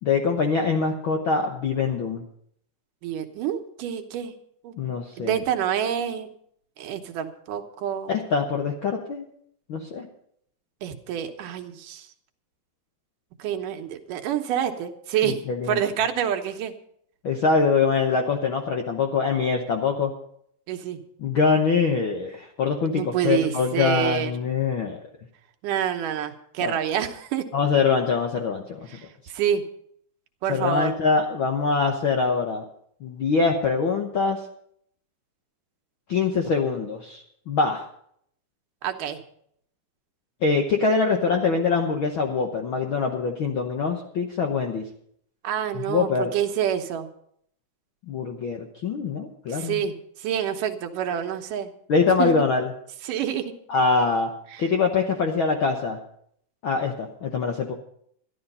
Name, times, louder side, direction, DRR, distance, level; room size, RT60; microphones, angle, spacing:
voice 1, 0.0-2.2 4.8-5.4 8.1-9.2 9.7-10.1 15.2-15.8 17.2-20.1 21.2-25.0 26.6-26.7 27.5-28.8 30.5-32.6 33.0-34.4 36.1-37.8 40.4-44.8 45.7-46.3 48.1-49.8 51.9-52.7 53.7-54.3 54.6-56.0 56.6-57.7, left 4 dB, 65° left, 3 dB, 1.2 m, -24 dB
voice 2, 3.0-4.3 4.6-4.8 5.2-6.3 6.8-8.1 10.8-12.1 13.4-15.4 15.7-16.7 20.7-21.0 22.9-24.3 25.6-27.4 28.9-29.1 29.3-29.6 30.4-30.9 38.8-39.2 45.4-47.1 49.5-49.9 50.2-51.7 52.0-52.3 53.0-53.5 54.5-54.6, right 9 dB, 85° right, 5 dB, 2.6 m, -27 dB
13.0 x 11.5 x 5.5 m, 0.68 s
omnidirectional pair, 3.6 m